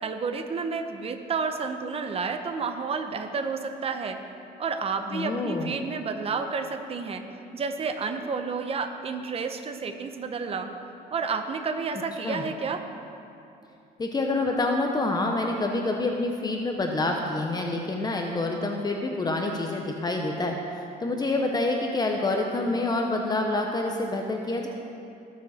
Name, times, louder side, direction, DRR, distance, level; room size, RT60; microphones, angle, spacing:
voice 1, 0.0-4.2 4.6-7.2 7.5-10.7 11.1-12.8, right 5 dB, 35° right, 7 dB, 0.9 m, -30 dB
voice 2, 5.1-5.7 12.2-12.4 14.0-20.5 21.0-24.7, left 2 dB, 25° left, 2 dB, 0.9 m, -27 dB
19.0 x 7.4 x 4.3 m, 2.7 s
cardioid pair, 110°, 17 cm